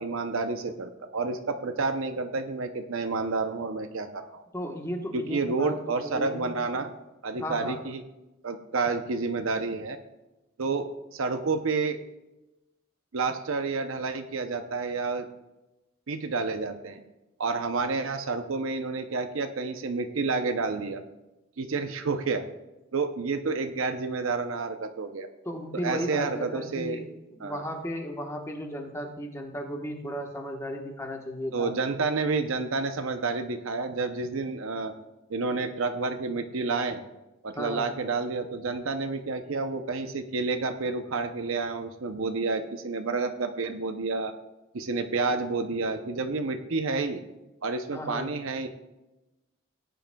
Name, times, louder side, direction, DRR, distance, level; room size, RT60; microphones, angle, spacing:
voice 1, 0.0-4.4 5.1-6.9 7.2-8.0 8.4-10.0 10.6-12.0 13.1-15.3 16.1-17.0 17.4-21.0 21.6-22.4 22.9-25.3 25.8-27.0 27.4-27.6 31.5-34.9 35.3-37.0 37.4-44.3 44.7-47.2 47.6-48.7, right 4 dB, 75° right, 7 dB, 0.7 m, -29 dB
voice 2, 4.5-6.5 7.3-7.8 25.4-31.7 37.6-37.9 47.9-48.3, equal, 15° left, 2 dB, 1.2 m, -35 dB
17.5 x 10.0 x 2.3 m, 1.0 s
head